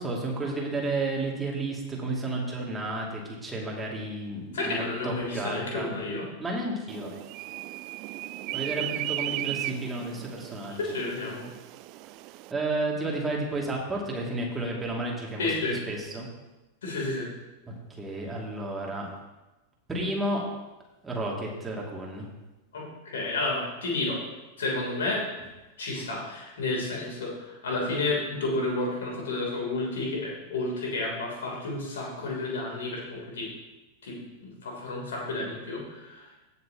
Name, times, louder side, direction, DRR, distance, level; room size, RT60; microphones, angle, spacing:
voice 1, 0.0-5.9 6.4-7.1 8.5-10.8 12.5-16.3 17.9-19.1 19.9-20.5 21.0-22.3, right 2 dB, 10° right, -2 dB, 2.6 m, -32 dB
voice 2, 4.5-6.3 10.8-11.5 15.4-15.8 16.8-17.3 22.7-24.2 24.6-25.2 25.8-33.5 34.0-36.3, left 2 dB, 65° left, -2 dB, 3.4 m, -31 dB
sound 1, 6.9-12.5, right 16 dB, 40° right, 0.4 m, -36 dB
16.5 x 6.8 x 3.0 m, 1.1 s
figure-of-eight pair, 90°, 0 cm